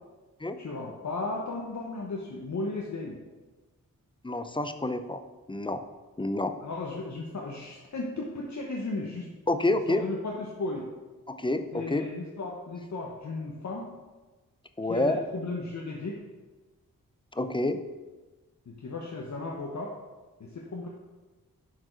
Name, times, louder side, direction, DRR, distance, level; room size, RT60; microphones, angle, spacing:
voice 1, 0.6-3.2 6.6-9.3 9.9-10.9 11.7-13.9 14.9-16.2 18.7-19.9 20.4-20.9, left 3 dB, 50° left, -1 dB, 1.0 m, -35 dB
voice 2, 4.2-5.2 5.5-5.8 6.2-6.5 9.5-10.0 11.3-12.1 14.8-15.2 17.3-17.8, left 2 dB, 15° left, 10 dB, 0.5 m, -28 dB
6.1 x 4.7 x 4.4 m, 1.2 s
cardioid pair, 40°, 36 cm